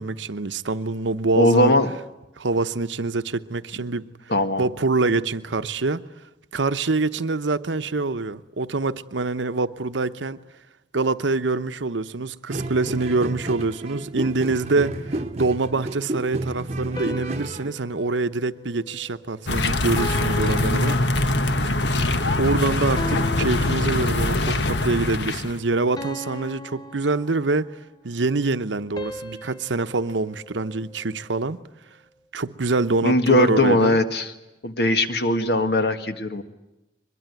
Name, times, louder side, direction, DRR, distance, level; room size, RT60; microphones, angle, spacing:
voice 1, 0.0-1.7 2.4-4.1 4.6-6.0 6.5-10.4 10.9-21.0 22.3-27.7 28.0-31.6 32.3-34.0, right 3 dB, 90° right, 0.9 m, -25 dB
voice 2, 1.4-1.9 4.3-4.6 33.0-34.3 34.6-36.4, left 1 dB, 60° left, 1.7 m, -19 dB
sound 1, 12.5-17.7, right 1 dB, 35° right, 1.0 m, -31 dB
sound 2, 17.0-19.5 20.0-21.7 23.0-24.5 26.0-27.8 29.0-31.3, left 2 dB, 20° left, 0.8 m, -38 dB
sound 3, 19.5-25.6, left 2 dB, 75° left, 1.4 m, -23 dB
23.0 x 22.0 x 9.5 m
head